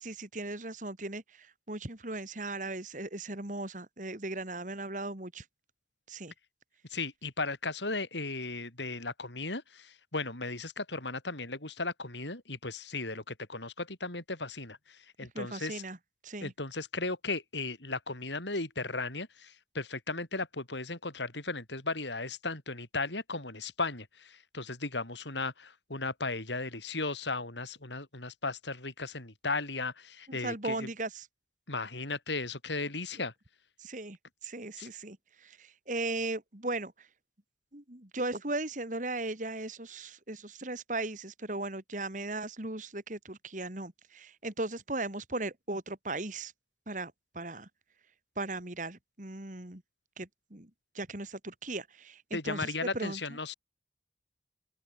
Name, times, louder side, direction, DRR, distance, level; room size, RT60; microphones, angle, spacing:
voice 1, 0.0-5.4 6.1-6.3 15.3-16.0 16.2-16.5 30.3-31.3 33.8-34.2 34.4-36.9 37.7-46.5 46.9-47.7 48.4-49.8 50.2-50.7 50.9-53.2, right 2 dB, 45° right, 2.6 m, -37 dB
voice 2, 6.9-15.8 16.4-30.9 31.7-33.3 34.8-34.9 52.3-53.5, left 3 dB, 85° left, 6.2 m, -36 dB
open air
head